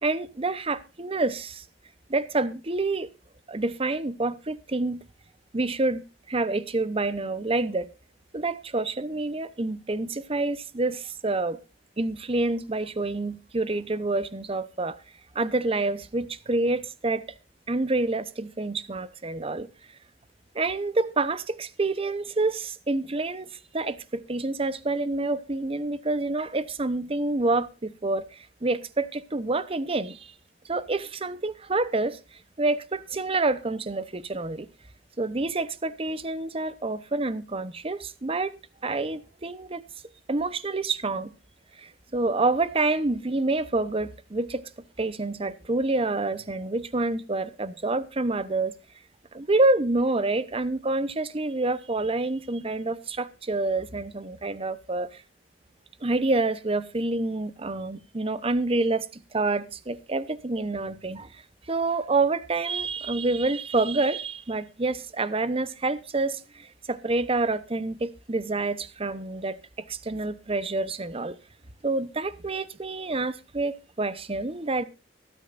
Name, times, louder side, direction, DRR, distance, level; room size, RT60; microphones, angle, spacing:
voice 1, 0.0-1.6 2.1-3.1 3.5-5.0 5.5-7.9 8.3-11.6 12.0-15.0 15.3-17.2 17.7-19.7 20.5-30.3 30.6-34.7 35.2-38.6 38.8-39.8 40.3-41.3 41.8-44.6 45.0-48.7 49.3-55.2 56.0-61.4 61.7-69.6 69.9-71.4 71.8-74.8, right 2 dB, 30° right, 0.8 m, -27 dB
24.5 x 9.1 x 2.5 m
head